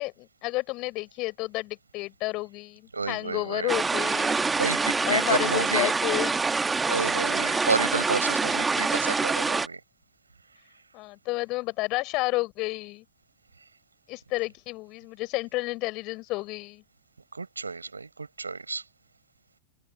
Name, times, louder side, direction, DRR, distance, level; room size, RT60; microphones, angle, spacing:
voice 1, 0.0-4.5 5.0-6.4 8.7-8.8 10.9-13.0 14.1-16.8, left 22 dB, 40° left, 5.3 m, -31 dB
voice 2, 2.9-3.7 4.6-5.9 6.9-9.8 17.3-18.8, right 4 dB, 80° right, 4.8 m, -30 dB
sound 1, 3.7-9.7, right 4 dB, 10° right, 1.6 m, -26 dB
figure-of-eight pair, 90°, 0 cm